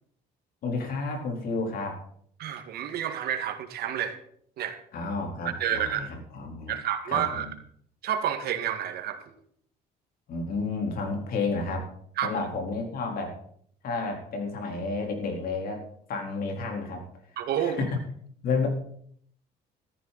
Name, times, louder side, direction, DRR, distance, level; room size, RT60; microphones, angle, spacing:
voice 1, 0.6-2.0 4.9-6.8 7.1-7.5 10.3-11.9 12.2-13.4 13.8-15.8 16.1-17.0 17.6-18.0 18.4-18.7, left 3 dB, 60° left, 2 dB, 3.9 m, -31 dB
voice 2, 2.4-4.2 4.6-4.8 5.6-6.0 6.7-7.5 8.0-9.2 12.2-12.3 17.4-17.8, right 10 dB, 70° right, 8 dB, 2.0 m, -29 dB
14.0 x 13.5 x 4.2 m, 0.63 s
cardioid pair, 110°, 17 cm